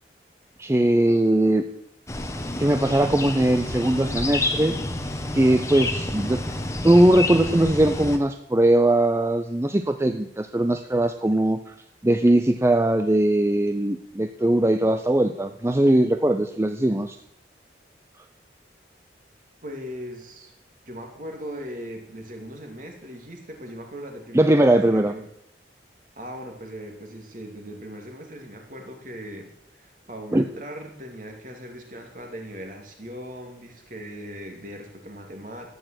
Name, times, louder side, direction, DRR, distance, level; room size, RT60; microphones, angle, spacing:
voice 1, 0.6-1.6 2.6-4.8 5.3-6.4 6.8-11.7 12.0-17.2 24.3-25.1 30.3-30.4, right 1 dB, 15° right, 8 dB, 0.5 m, -20 dB
sound 1, 2.1-8.2, left 2 dB, 15° left, 1.1 m, -29 dB
voice 2, 19.6-20.5 20.9-25.3 26.2-35.7, equal, 45° right, 2 dB, 2.7 m, -39 dB
13.5 x 9.0 x 7.7 m, 0.79 s
head